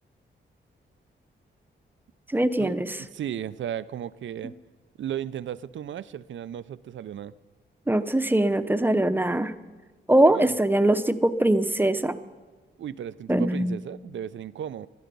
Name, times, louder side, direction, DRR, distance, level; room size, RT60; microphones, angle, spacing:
voice 1, 2.3-3.0 7.9-9.5 10.1-12.2 13.3-13.8, right 1 dB, 10° right, 11 dB, 0.8 m, -22 dB
voice 2, 3.1-4.5 5.0-7.3 10.3-10.6 12.8-14.9, right 10 dB, 75° right, 16 dB, 0.5 m, -35 dB
20.0 x 12.5 x 5.4 m, 1.3 s
cardioid pair, 70°, 20 cm